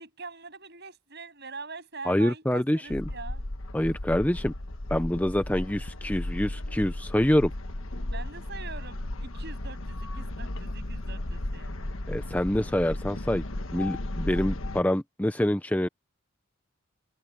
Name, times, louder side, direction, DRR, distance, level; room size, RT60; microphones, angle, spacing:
voice 1, 0.0-3.4 8.1-11.7, right 4 dB, 50° right, 7.6 m, -43 dB
voice 2, 2.0-3.0 3.7-4.5 4.9-7.5 12.1-13.4 13.7-15.9, left 1 dB, 5° left, 0.5 m, -26 dB
sound 1, 2.9-14.8, left 1 dB, 75° left, 1.5 m, -35 dB
head